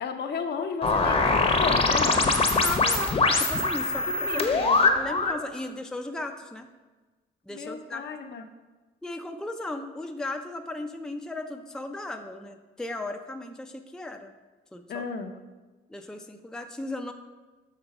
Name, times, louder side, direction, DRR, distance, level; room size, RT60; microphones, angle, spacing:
voice 1, 0.0-2.3 4.1-4.9 7.5-8.5 14.9-15.3, left 5 dB, 55° left, 5 dB, 0.8 m, -33 dB
sound 1, 0.8-5.4, left 3 dB, 30° left, 0.9 m, -23 dB
voice 2, 2.1-4.5 4.8-6.7 7.5-8.0 9.0-14.3 14.7-15.1 15.9-17.1, left 2 dB, 5° left, 5 dB, 0.5 m, -36 dB
6.8 x 3.9 x 5.8 m, 1.2 s
cardioid pair, 90°, 20 cm